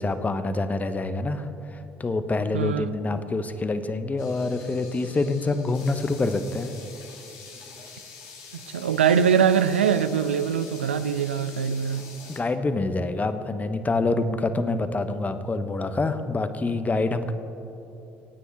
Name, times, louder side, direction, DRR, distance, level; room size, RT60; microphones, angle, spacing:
voice 1, 0.0-6.7 12.3-17.3, left 3 dB, 25° left, 10 dB, 1.0 m, -26 dB
voice 2, 2.5-2.9 8.7-12.0, right 7 dB, 90° right, 12 dB, 0.4 m, -22 dB
sound 1, 4.2-12.4, left 5 dB, 70° left, 1.9 m, -45 dB
25.5 x 9.4 x 3.4 m, 3.0 s
hypercardioid pair, 55°, 6 cm